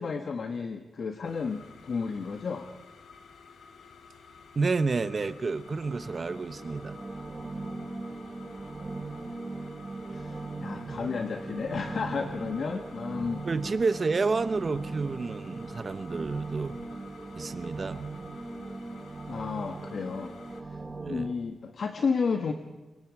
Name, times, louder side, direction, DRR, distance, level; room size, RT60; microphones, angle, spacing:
voice 1, 0.0-2.7 10.1-13.5 19.3-20.3 20.7-20.8 21.1-22.5, left 5 dB, 55° left, 6 dB, 1.5 m, -32 dB
sound 1, 1.2-20.6, left 5 dB, 80° left, 2.3 m, -52 dB
voice 2, 4.5-7.0 10.9-11.1 13.4-16.8 17.4-18.1 20.9-21.3, right 4 dB, 40° right, 12 dB, 1.1 m, -30 dB
sound 2, 5.1-21.3, right 3 dB, 20° right, 2.1 m, -39 dB
28.0 x 21.5 x 4.9 m, 1.1 s
wide cardioid pair, 110°, 0 cm